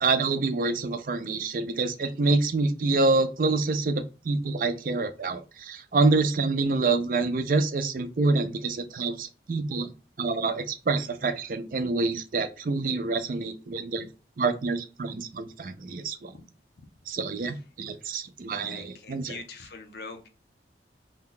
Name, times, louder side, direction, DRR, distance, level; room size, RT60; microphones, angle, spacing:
voice 1, 0.0-9.9 10.2-14.1 14.4-16.3 17.1-19.4, right 3 dB, 50° right, 9 dB, 0.4 m, -27 dB
voice 2, 18.6-20.3, left 3 dB, 70° left, 6 dB, 0.6 m, -43 dB
2.7 x 2.2 x 3.7 m, 0.32 s
head